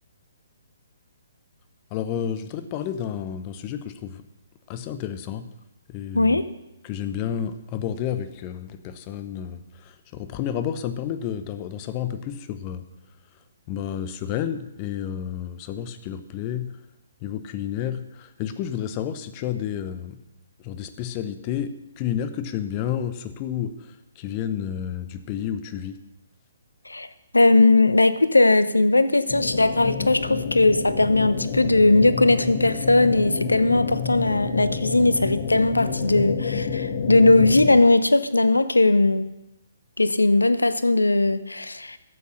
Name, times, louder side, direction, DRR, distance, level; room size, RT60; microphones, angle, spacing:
voice 1, 1.9-4.2 4.7-5.5 5.9-6.4 6.8-12.8 13.7-16.8 17.2-20.2 20.6-23.7 24.2-26.0, left 9 dB, 30° left, 11 dB, 1.0 m, -30 dB
voice 2, 6.1-6.5 26.9-27.1 27.3-39.3 40.0-42.0, left 2 dB, 85° left, 13 dB, 0.8 m, -19 dB
sound 1, 29.3-37.8, left 5 dB, 50° left, 1.4 m, -29 dB
12.5 x 8.4 x 6.6 m, 0.90 s
figure-of-eight pair, 130°, 0 cm